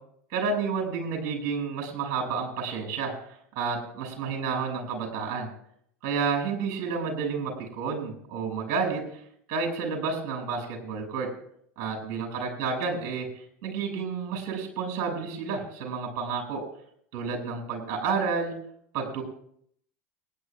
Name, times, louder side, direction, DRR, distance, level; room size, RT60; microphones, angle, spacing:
voice 1, 0.3-3.1 3.6-5.5 6.0-9.2 9.5-11.3 11.8-16.6 17.1-18.5 18.9-19.2, right 5 dB, 55° right, 1 dB, 6.9 m, -30 dB
30.0 x 10.0 x 2.5 m, 0.67 s
hypercardioid pair, 90°, 8 cm